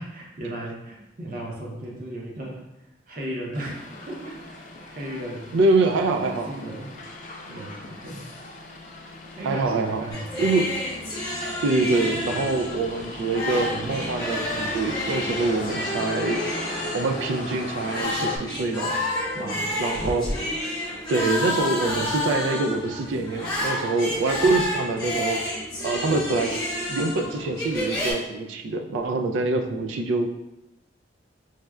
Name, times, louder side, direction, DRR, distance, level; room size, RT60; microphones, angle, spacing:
voice 1, 0.0-2.6 3.1-5.6 6.2-6.9 7.5-8.3 9.4-10.4 19.3-19.8 29.4-29.9, right 1 dB, 45° right, -2 dB, 0.6 m, -36 dB
Motor vehicle (road), 3.5-18.4, left 1 dB, 45° left, 0.4 m, -37 dB
voice 2, 5.5-6.5 9.4-10.0 10.4-10.8 11.6-16.4 16.9-19.0 19.8-20.2 21.1-25.6 25.8-26.6 26.9-30.3, right 3 dB, 85° right, 5 dB, 0.3 m, -25 dB
sound 1, 10.1-28.1, left 1 dB, 20° left, 0.8 m, -30 dB
4.7 x 2.1 x 2.2 m, 0.94 s
head